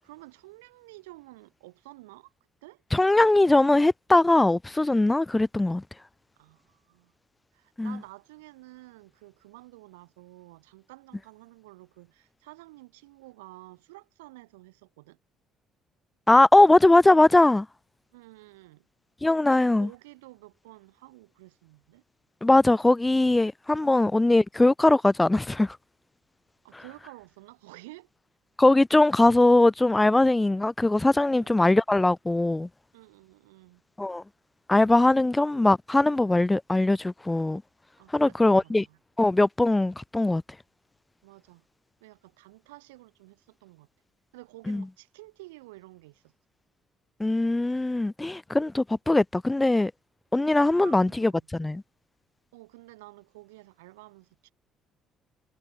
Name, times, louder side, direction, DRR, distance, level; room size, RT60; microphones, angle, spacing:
voice 1, 0.0-2.3 2.6-2.8 6.3-7.1 7.5-15.2 18.1-18.9 19.4-22.0 26.6-28.1 31.3-31.6 32.9-33.8 38.0-39.0 41.2-41.7 42.0-43.9 44.3-46.3 50.7-51.5 52.5-54.5, right 21 dB, 75° right, 7.7 m, -50 dB
voice 2, 2.9-5.8 7.8-8.0 16.3-17.7 19.2-19.9 22.4-25.8 28.6-32.7 34.0-34.2 34.7-37.6 38.1-38.8 39.2-40.4 44.7-44.8 47.2-49.9 50.3-51.8, left 2 dB, 15° left, 0.4 m, -21 dB
figure-of-eight pair, 50°, 0 cm